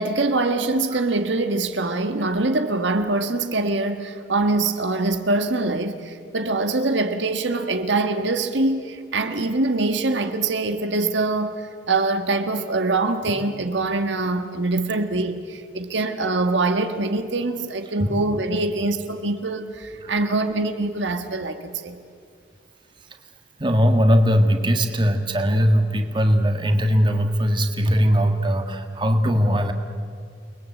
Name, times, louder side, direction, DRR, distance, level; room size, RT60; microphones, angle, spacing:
voice 1, 0.0-22.0, right 2 dB, 70° right, 1.5 m, -24 dB
voice 2, 23.6-29.7, equal, 25° right, 1.7 m, -20 dB
29.5 x 21.0 x 8.4 m
head